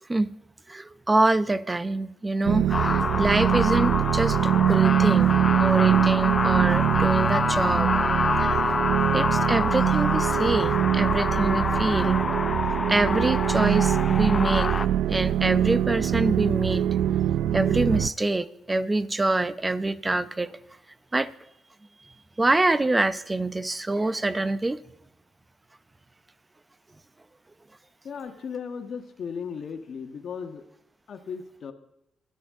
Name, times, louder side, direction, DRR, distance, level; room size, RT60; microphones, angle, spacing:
voice 1, 0.7-5.3 5.6-7.9 8.4-8.8 9.1-12.2 12.9-14.7 15.1-16.9 17.5-20.6 21.1-21.3 22.4-24.8, right 2 dB, 20° right, 0.8 m, -25 dB
sound 1, 2.4-18.1, right 11 dB, 80° right, 0.4 m, -23 dB
sound 2, 2.7-14.9, left 4 dB, 35° left, 0.7 m, -27 dB
voice 2, 28.0-30.6 31.1-31.7, left 6 dB, 55° left, 1.6 m, -36 dB
27.5 x 10.0 x 3.8 m
cardioid pair, 90°, 0 cm